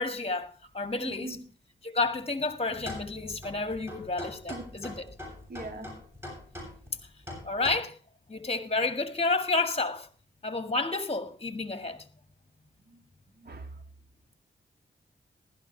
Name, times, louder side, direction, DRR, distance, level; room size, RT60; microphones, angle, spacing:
voice 1, 0.0-1.4 1.8-5.0 7.4-8.0 8.3-10.1 10.4-12.1, left 3 dB, 30° left, 1.8 m, -30 dB
voice 2, 1.0-1.4 4.5-4.7 5.5-5.9 12.8-13.1 13.3-13.8, right 3 dB, 55° right, 2.4 m, -42 dB
sound 1, 2.8-7.8, left 1 dB, 10° right, 7.8 m, -42 dB
15.5 x 12.5 x 3.3 m
cardioid pair, 50°, 20 cm